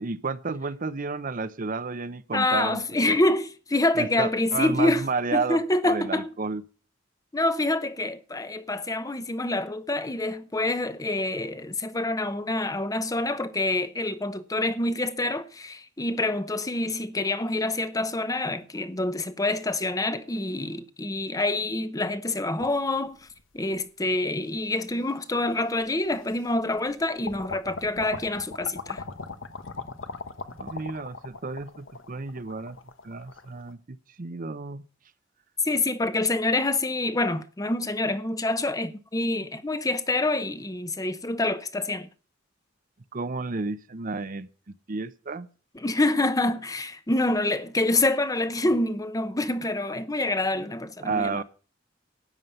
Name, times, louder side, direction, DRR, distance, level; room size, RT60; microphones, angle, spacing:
voice 1, 0.0-2.8 3.1-3.2 4.0-6.6 30.6-32.8 33.0-34.9 43.1-45.5 51.0-51.4, right 4 dB, 45° right, 0.7 m, -31 dB
voice 2, 2.3-5.0 5.3-6.3 7.3-23.3 23.5-29.0 35.6-42.1 45.7-51.4, left 2 dB, 20° left, 0.8 m, -26 dB
sound 1, 22.6-23.7 24.5-24.6 25.8-25.9 26.3-26.9 27.2-33.7, left 4 dB, 90° left, 1.2 m, -39 dB
13.0 x 9.3 x 5.6 m
head